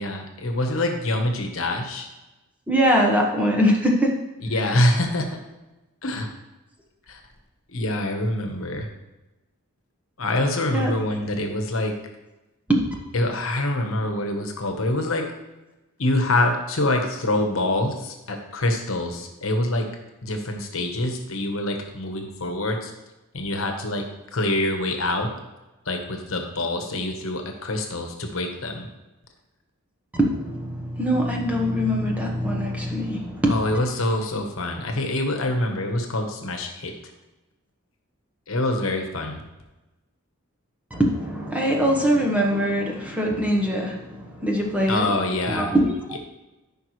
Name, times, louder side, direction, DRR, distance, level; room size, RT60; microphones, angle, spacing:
voice 1, 0.0-2.1 4.5-5.4 6.0-6.3 7.1-7.2 7.7-8.9 10.2-11.9 13.1-15.2 16.0-19.9 20.2-22.9 23.3-24.0 24.3-25.3 25.8-28.9 33.5-36.9 38.5-39.4 44.9-45.7 46.1-46.2, left 1 dB, 70° left, 3 dB, 1.2 m, -25 dB
voice 2, 2.7-4.2 10.7-10.9 12.7-12.9 30.1-33.8 40.9-45.0 45.5-45.9, equal, 5° right, -1 dB, 1.1 m, -22 dB
13.5 x 5.4 x 3.2 m, 1.1 s
head